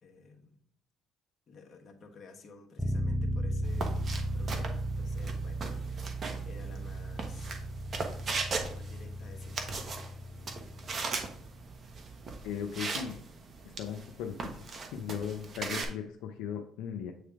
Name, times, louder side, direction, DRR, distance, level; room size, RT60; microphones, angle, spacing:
voice 1, 0.0-0.6 1.5-7.6 8.6-10.0, left 3 dB, 50° left, 2 dB, 1.3 m, -53 dB
sound 1, 2.8-12.5, right 1 dB, ahead, 0.7 m, -36 dB
sound 2, 3.6-15.8, right 4 dB, 40° right, 1.1 m, -39 dB
voice 2, 12.4-13.2 13.8-14.6 14.9-17.1, left 8 dB, 80° left, 2 dB, 0.6 m, -37 dB
8.5 x 3.3 x 3.6 m, 0.62 s
supercardioid pair, 80°, 0 cm